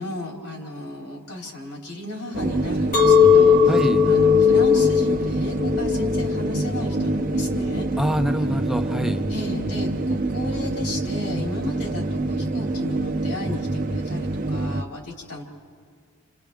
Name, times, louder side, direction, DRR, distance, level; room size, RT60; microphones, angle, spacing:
voice 1, 0.0-3.8 4.1-7.9 9.3-15.4, left 1 dB, 90° left, -1 dB, 3.8 m, -34 dB
sound 1, 2.3-14.8, right 2 dB, 40° right, 0.7 m, -26 dB
Chink clink, 2.9-8.1, left 7 dB, 40° left, 1.9 m, -18 dB
voice 2, 3.7-4.1 8.0-9.3, equal, ahead, 5 dB, 0.5 m, -24 dB
29.5 x 28.0 x 3.5 m, 2.1 s
head